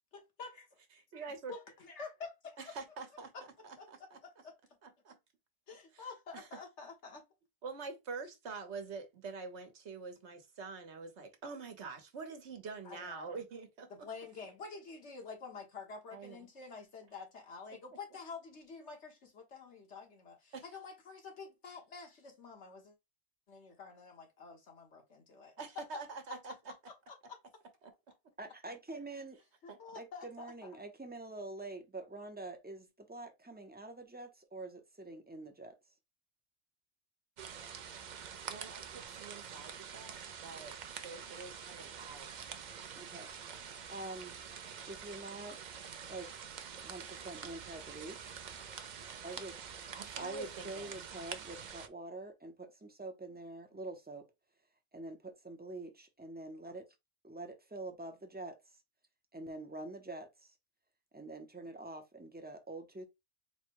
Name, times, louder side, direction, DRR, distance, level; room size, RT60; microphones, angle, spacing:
voice 1, 0.1-0.5 1.5-2.3 3.8-3.9 4.2-4.5 5.7-7.2 12.9-13.4 14.0-23.0 23.5-25.5 27.1-27.4 29.6-30.7, left 4 dB, 75° left, 1.6 m, -48 dB
voice 2, 1.1-1.5 2.6-4.2 4.8-5.2 5.9-6.1 6.3-6.6 7.6-13.9 16.1-16.5 20.5-20.6 25.6-26.7 27.8-27.9 29.7-29.8 38.4-40.1 40.4-42.5 49.9-51.0, right 4 dB, 70° right, 1.3 m, -46 dB
voice 3, 28.4-29.4 29.9-35.7 42.9-43.3 43.9-44.4 44.9-45.7 46.1-46.4 46.8-48.4 49.1-49.6 50.2-54.3 54.9-56.9 57.2-58.6 59.3-60.5 61.1-63.1, right 2 dB, 10° right, 0.6 m, -46 dB
sound 1, 37.4-51.9, right 7 dB, 55° right, 0.6 m, -46 dB
4.1 x 2.2 x 4.5 m
omnidirectional pair, 1.2 m